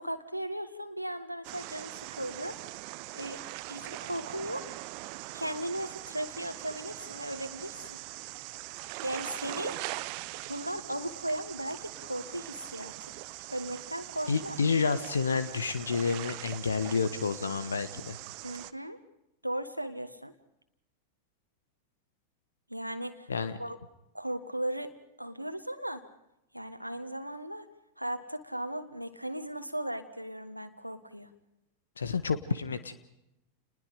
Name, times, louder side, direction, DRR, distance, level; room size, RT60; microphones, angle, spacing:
voice 1, 0.0-2.6 3.1-3.4 3.7-4.7 5.3-8.0 9.0-9.8 10.5-13.2 13.5-14.6 18.4-19.0 19.4-20.3 22.7-23.3 23.6-23.8 24.1-26.1 26.5-27.7 28.0-31.3, right 1 dB, 90° right, 8 dB, 1.6 m, -37 dB
sound 1, 1.4-18.7, right 19 dB, 45° right, 0.8 m, -42 dB
voice 2, 14.3-18.2 23.3-23.6 32.0-32.9, left 5 dB, 70° left, 12 dB, 1.3 m, -29 dB
29.5 x 20.5 x 5.1 m, 0.89 s
figure-of-eight pair, 90°, 0 cm